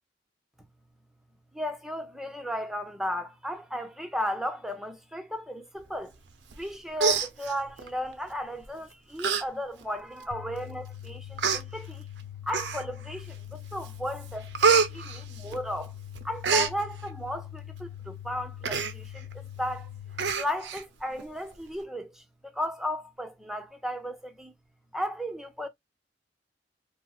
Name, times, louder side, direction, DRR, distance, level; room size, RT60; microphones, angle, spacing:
voice 1, 1.5-6.1 6.6-12.0 12.4-15.9 16.2-19.9 20.4-22.2 22.5-24.5 24.9-25.7, left 1 dB, ahead, 0.5 m, -35 dB
Human voice, 6.5-6.7 7.0-7.9 8.6-8.8 9.2-9.4 9.8-9.9 10.7-10.8 11.4-11.6 12.5-13.1 13.5-13.9 14.2-15.9 16.2-16.7 18.6-18.9 19.3-19.4 19.7-19.8 20.2-20.8 21.2-21.3, right 5 dB, 70° right, 0.5 m, -26 dB
sound 1, 10.3-20.3, left 11 dB, 50° left, 0.3 m, -43 dB
4.0 x 2.0 x 2.3 m
head